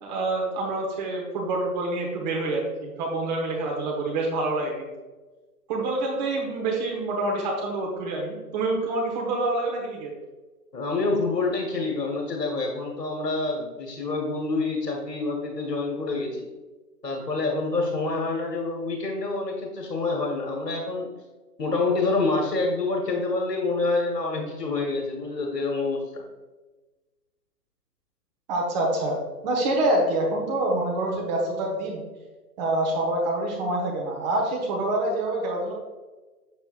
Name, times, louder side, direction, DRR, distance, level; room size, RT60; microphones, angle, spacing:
voice 1, 0.0-4.9 5.7-10.1 28.5-29.2 29.4-32.0 32.6-35.7, right 2 dB, 25° right, -1 dB, 1.1 m, -26 dB
voice 2, 10.7-16.5 17.0-21.1 21.6-26.2, left 3 dB, 80° left, 1 dB, 1.6 m, -27 dB
7.7 x 7.2 x 2.5 m, 1.2 s
figure-of-eight pair, 130°, 48 cm